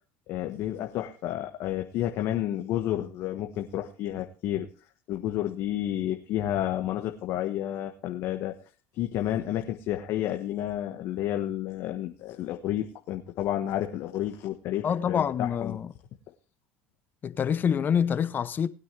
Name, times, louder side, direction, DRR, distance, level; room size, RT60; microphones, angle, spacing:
voice 1, 0.3-4.7 5.1-8.5 8.9-15.8, left 12 dB, 60° left, 1.4 m, -31 dB
voice 2, 14.8-15.9 17.2-18.7, left 8 dB, 35° left, 0.8 m, -26 dB
19.5 x 9.2 x 3.4 m
supercardioid pair, 90°, 6 cm